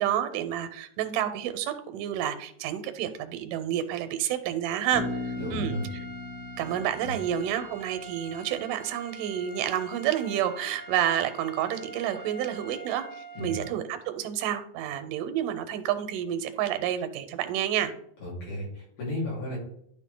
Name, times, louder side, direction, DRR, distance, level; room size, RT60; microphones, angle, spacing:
voice 1, 0.0-5.8 6.6-13.1 13.4-17.9, right 10 dB, 85° right, 10 dB, 2.3 m, -29 dB
sound 1, 4.8-13.7, right 2 dB, 45° left, 2.1 m, -45 dB
Bass guitar, 4.9-8.6, left 3 dB, 55° right, 0.8 m, -38 dB
voice 2, 5.4-5.9 7.0-7.1 13.4-13.6 18.2-19.6, left 1 dB, 80° left, -6 dB, 5.6 m, -33 dB
12.0 x 4.5 x 3.8 m, 0.69 s
omnidirectional pair, 3.7 m